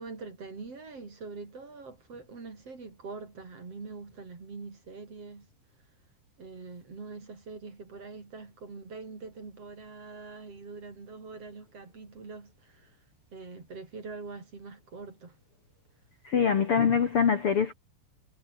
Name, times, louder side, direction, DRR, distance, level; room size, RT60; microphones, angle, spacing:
voice 1, 0.0-5.5 6.4-13.0 13.3-15.4, right 4 dB, 30° right, 5.0 m, -44 dB
voice 2, 16.2-17.7, left 6 dB, 90° left, 1.2 m, -24 dB
omnidirectional pair, 5.6 m